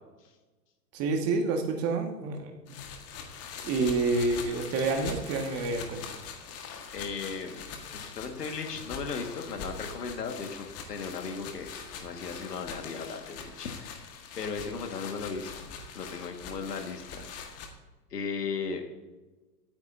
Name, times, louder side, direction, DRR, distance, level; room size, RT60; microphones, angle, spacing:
voice 1, 0.9-2.5 3.6-6.2, right 3 dB, 30° right, 4 dB, 1.7 m, -28 dB
sound 1, 2.7-17.7, left 6 dB, 30° left, 1.7 m, -42 dB
voice 2, 6.9-11.7 12.0-15.5 15.9-17.5 18.1-18.8, left 5 dB, 70° left, 5 dB, 2.0 m, -36 dB
23.5 x 9.3 x 2.7 m, 1.2 s
figure-of-eight pair, 110°, 50 cm